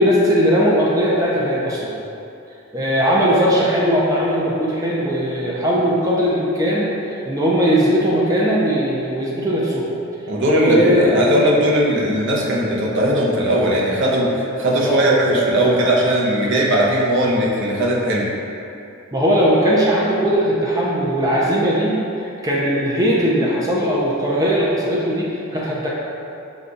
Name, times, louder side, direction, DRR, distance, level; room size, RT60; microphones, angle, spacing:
voice 1, 0.0-1.9 2.7-9.9 10.5-11.2 14.8-15.1 19.1-25.9, equal, 15° right, -6 dB, 0.4 m, -19 dB
voice 2, 10.3-18.3, equal, 60° right, -3 dB, 0.7 m, -18 dB
5.3 x 2.3 x 3.7 m, 2.7 s
head